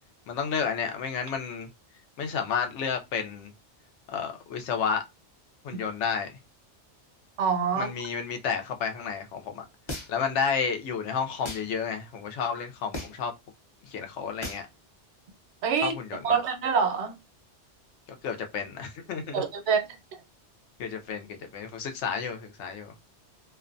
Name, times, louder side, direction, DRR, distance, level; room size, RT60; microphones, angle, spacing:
voice 1, 0.3-1.7 2.2-3.5 4.1-5.0 5.6-6.4 7.8-9.6 10.1-13.3 13.9-14.6 15.8-16.4 18.2-19.4 20.8-22.9, left 6 dB, 80° left, 0.9 m, -31 dB
voice 2, 7.4-7.9 15.6-15.9 16.2-17.1 19.3-19.9 20.1-20.2, right 6 dB, 75° right, 1.0 m, -25 dB
sound 1, 9.9-10.3 11.4-11.7 12.9-13.3 14.4-14.7, left 2 dB, 30° left, 0.6 m, -36 dB
2.5 x 2.1 x 2.5 m
omnidirectional pair, 1.2 m